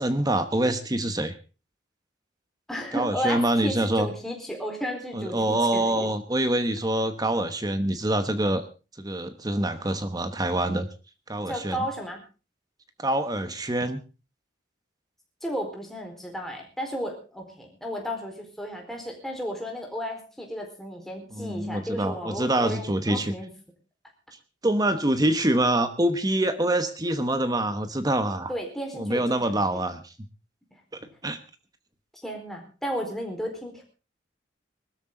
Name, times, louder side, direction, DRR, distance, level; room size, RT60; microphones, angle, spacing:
voice 1, 0.0-1.3 2.9-4.1 5.1-8.6 9.0-10.9 11.3-11.9 13.0-14.0 21.3-23.3 24.6-28.5 28.9-30.1 30.9-31.4, right 1 dB, 20° right, 10 dB, 1.1 m, -25 dB
voice 2, 2.7-6.1 11.5-12.2 15.4-23.5 28.5-29.7 32.1-33.8, equal, ahead, 1 dB, 4.3 m, -33 dB
20.5 x 13.5 x 3.8 m, 0.34 s
head